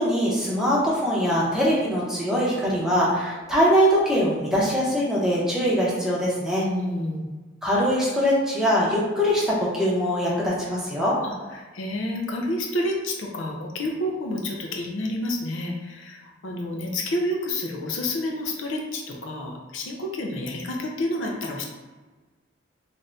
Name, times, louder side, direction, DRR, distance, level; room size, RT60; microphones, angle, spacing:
voice 1, 0.0-6.7 7.6-11.2, equal, 5° right, -6 dB, 0.6 m, -22 dB
voice 2, 6.6-7.3 11.2-21.6, left 1 dB, 85° left, 0 dB, 0.5 m, -29 dB
2.6 x 2.5 x 3.3 m, 1.3 s
head